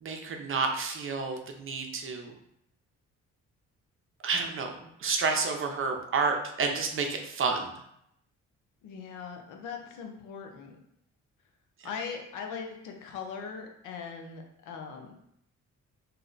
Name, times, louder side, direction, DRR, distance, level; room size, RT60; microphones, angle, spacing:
voice 1, 0.0-2.3 4.2-4.8 5.0-7.7, right 4 dB, 45° right, 4 dB, 0.6 m, -30 dB
voice 2, 8.8-10.8 11.8-15.1, left 6 dB, 90° left, 3 dB, 0.6 m, -40 dB
2.7 x 2.0 x 3.8 m, 0.76 s
cardioid pair, 90°, 30 cm